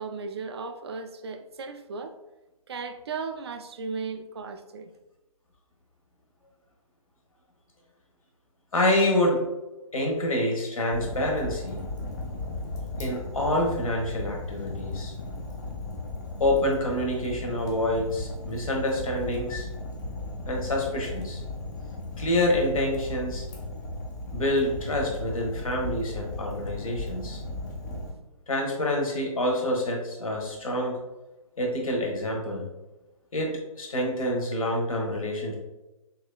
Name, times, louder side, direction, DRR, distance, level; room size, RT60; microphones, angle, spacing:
voice 1, 0.0-2.2 2.7-4.9, right 4 dB, 45° right, 7 dB, 0.4 m, -36 dB
voice 2, 8.7-9.4 9.9-11.8 13.0-15.1 16.4-19.7 20.5-21.4 22.2-23.4 24.3-27.4 28.5-31.0 31.6-32.7 33.3-35.6, left 1 dB, 70° left, 0 dB, 1.4 m, -27 dB
Fire, 10.9-28.1, left 2 dB, 30° left, 0.6 m, -36 dB
6.2 x 2.8 x 2.4 m, 1.0 s
figure-of-eight pair, 140°, 18 cm